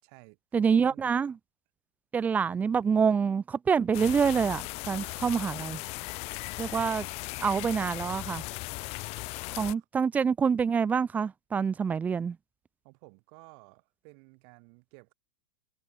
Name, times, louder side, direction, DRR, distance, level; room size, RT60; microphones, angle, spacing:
voice 1, 0.0-1.2 2.2-3.2 5.2-5.7 9.7-9.9 12.8-15.1, right 40 dB or more, 45° right, 5.4 m, -55 dB
voice 2, 0.5-1.4 2.1-5.8 6.6-7.1 7.4-8.4 9.6-12.4, right 6 dB, 10° right, 0.3 m, -26 dB
sound 1, 3.9-9.7, left 24 dB, 35° left, 1.1 m, -37 dB
hypercardioid pair, 140°, 18 cm